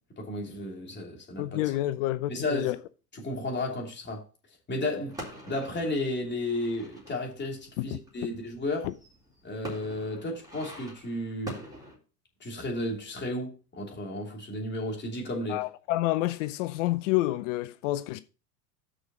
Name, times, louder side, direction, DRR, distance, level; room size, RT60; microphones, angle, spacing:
voice 1, 0.2-1.6 2.3-2.7 3.1-4.2 4.7-5.2 5.5-8.9 9.4-11.5 12.4-15.6, left 1 dB, 20° left, 3.0 m, -33 dB
voice 2, 1.4-2.8 7.9-8.0 8.8-8.9 15.5-18.2, left 16 dB, 50° left, 0.5 m, -28 dB
sound 1, 5.1-12.0, equal, 5° right, 3.7 m, -45 dB
6.3 x 5.0 x 6.1 m
hypercardioid pair, 90°, 50 cm